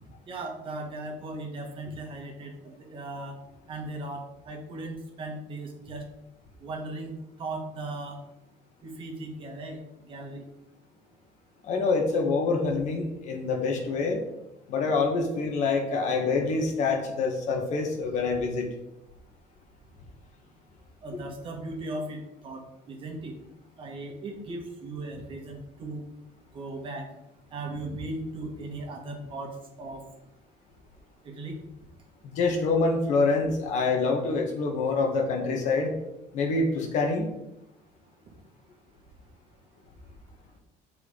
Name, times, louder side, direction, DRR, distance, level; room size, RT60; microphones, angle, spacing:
voice 1, 0.2-3.4 3.7-6.0 6.6-7.1 7.4-8.2 8.8-10.4 21.0-23.3 23.8-26.0 26.5-27.1 27.5-30.0 31.2-31.6 38.3-38.4, right 2 dB, 40° right, 1 dB, 1.7 m, -37 dB
voice 2, 11.6-14.2 14.7-18.7 32.2-36.0 36.3-37.3, left 3 dB, 60° left, 2 dB, 1.6 m, -26 dB
7.9 x 4.7 x 5.1 m, 0.87 s
cardioid pair, 165°, 14 cm